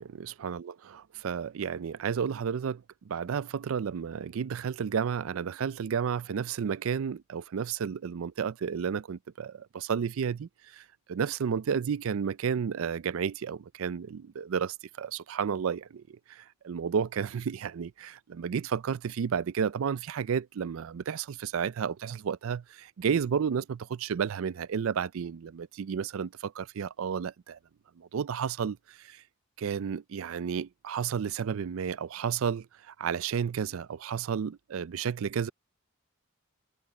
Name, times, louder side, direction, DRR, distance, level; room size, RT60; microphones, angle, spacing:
voice 1, 0.0-27.6 28.0-29.2 29.6-35.5, right 7 dB, 75° right, 0.4 m, -32 dB
head